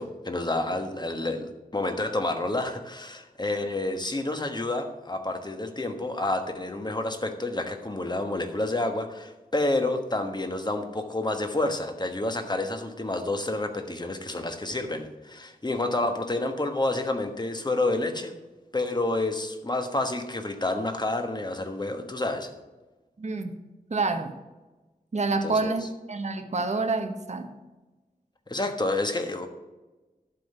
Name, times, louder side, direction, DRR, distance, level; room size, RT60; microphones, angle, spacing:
voice 1, 0.0-18.3 18.7-22.5 25.4-25.7 28.5-29.5, left 2 dB, 25° left, 6 dB, 1.3 m, -29 dB
voice 2, 23.2-23.5 23.9-24.4 25.1-25.8 26.1-27.5, right 3 dB, 45° right, 6 dB, 1.0 m, -27 dB
11.5 x 3.9 x 7.7 m, 1.1 s
wide cardioid pair, 60°, 16 cm